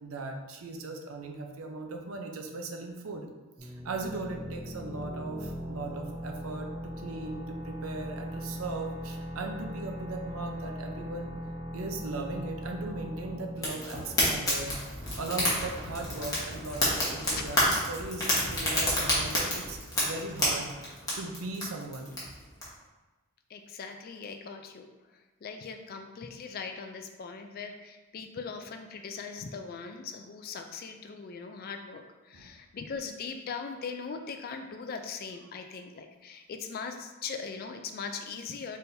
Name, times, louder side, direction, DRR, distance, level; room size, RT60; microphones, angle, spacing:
voice 1, 0.0-3.3 3.6-11.3 11.7-14.7 15.2-19.8 20.0-20.7 21.2-22.2 32.3-32.5, right 3 dB, 70° right, 3 dB, 0.6 m, -38 dB
sound 1, 3.6-15.1, equal, 15° right, 0.7 m, -39 dB
Fire, 13.6-22.6, left 1 dB, 15° left, 1.1 m, -30 dB
voice 2, 17.4-17.7 23.5-24.9 25.1-38.8, left 5 dB, 40° left, 6 dB, 0.3 m, -40 dB
4.1 x 3.7 x 2.6 m, 1.2 s
head